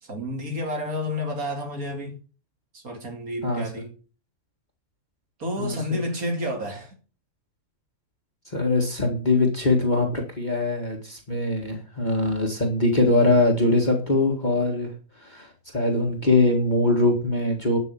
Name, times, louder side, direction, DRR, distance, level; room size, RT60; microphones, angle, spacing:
voice 1, 0.0-2.1 2.7-3.9 5.4-6.9, left 1 dB, 75° right, 3.1 m, -30 dB
voice 2, 5.6-6.0 8.5-14.9 15.2-15.5 15.7-17.8, left 2 dB, 30° left, 2.1 m, -22 dB
11.0 x 6.2 x 6.9 m
omnidirectional pair, 1.5 m